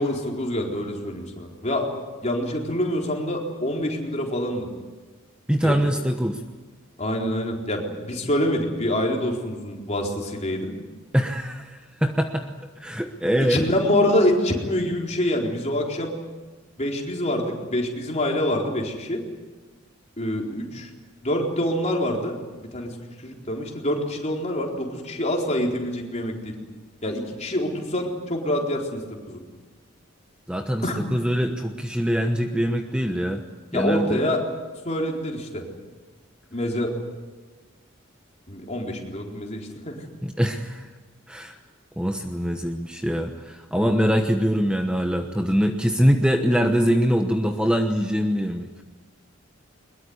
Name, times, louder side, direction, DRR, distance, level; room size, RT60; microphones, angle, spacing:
voice 1, 0.0-1.9 2.2-4.7 5.6-5.7 7.0-10.7 13.4-16.1 16.8-19.2 20.2-20.9 21.2-22.4 22.7-26.5 27.0-29.4 30.8-31.0 33.7-34.4 34.8-35.6 36.5-36.9 38.5-40.0, left 1 dB, 35° left, 1 dB, 4.2 m, -26 dB
voice 2, 5.5-6.4 11.1-12.5 12.8-13.7 30.5-33.4 33.7-34.2 40.2-40.9 41.3-41.6 42.0-48.8, equal, 5° right, 5 dB, 1.1 m, -23 dB
22.5 x 21.5 x 9.6 m, 1.3 s
head